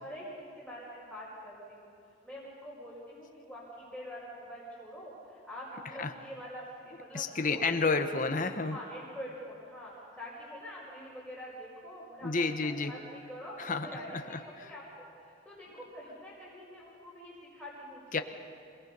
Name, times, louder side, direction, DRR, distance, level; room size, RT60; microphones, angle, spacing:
voice 1, 0.0-1.9 2.2-7.7 8.5-12.3 12.6-18.2, equal, 5° right, -9 dB, 5.0 m, -45 dB
voice 2, 7.1-8.8 12.2-12.9 13.6-13.9 14.1-14.7 18.1-18.2, left 4 dB, 40° left, 7 dB, 1.0 m, -30 dB
26.5 x 19.0 x 5.5 m, 2.7 s
head